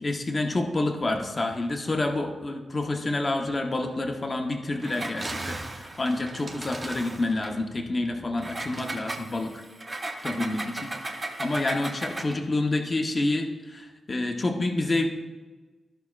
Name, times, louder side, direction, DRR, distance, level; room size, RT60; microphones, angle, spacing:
voice 1, 0.0-9.5 10.2-15.1, left 2 dB, 25° left, 2 dB, 0.8 m, -28 dB
Engine, 4.8-7.6 8.4-12.4, right 2 dB, 25° right, 0.8 m, -36 dB
14.0 x 5.7 x 2.4 m, 1.3 s
wide cardioid pair, 155°, 0 cm